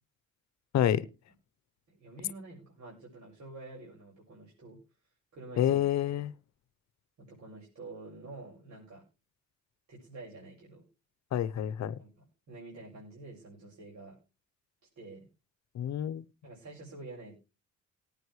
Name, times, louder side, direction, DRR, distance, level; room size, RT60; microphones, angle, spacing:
voice 1, 1.9-4.8 5.3-5.8 6.1-6.2 7.2-9.0 9.9-10.8 12.0-14.2 14.9-15.3 16.4-17.3, right 2 dB, 65° right, 6.9 m, -48 dB
voice 2, 5.6-6.3 11.3-12.0 15.7-16.2, left 11 dB, 65° left, 0.8 m, -28 dB
19.0 x 9.2 x 3.2 m
cardioid pair, 90°, 30 cm